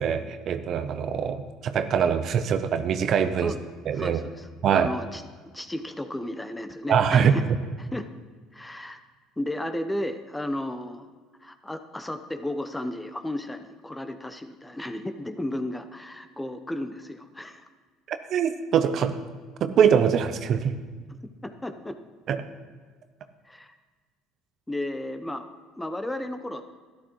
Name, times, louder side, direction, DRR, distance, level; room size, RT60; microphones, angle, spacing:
voice 1, 0.0-3.5 3.9-4.2 4.6-4.9 6.9-7.3 18.1-19.2 19.6-20.7 22.3-22.4, right 7 dB, 55° right, 10 dB, 0.7 m, -23 dB
voice 2, 3.9-5.2 5.5-7.4 7.8-8.1 8.5-9.0 9.4-11.1 11.4-17.6 21.4-22.0 23.4-23.8 24.7-25.5 25.8-26.7, left 1 dB, 10° left, 9 dB, 0.7 m, -34 dB
12.5 x 11.5 x 3.1 m, 1.5 s
supercardioid pair, 85°, 0 cm